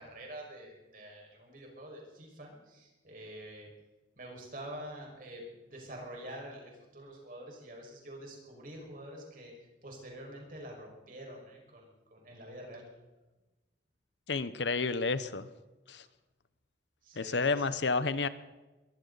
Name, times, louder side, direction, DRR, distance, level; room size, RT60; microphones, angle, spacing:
voice 1, 0.0-3.7 4.2-12.9 17.0-17.8, right 1 dB, 50° right, 0 dB, 5.6 m, -47 dB
voice 2, 14.3-15.5 15.9-16.1 17.1-18.3, left 4 dB, 75° left, 13 dB, 0.9 m, -30 dB
22.0 x 15.5 x 4.1 m, 1.1 s
head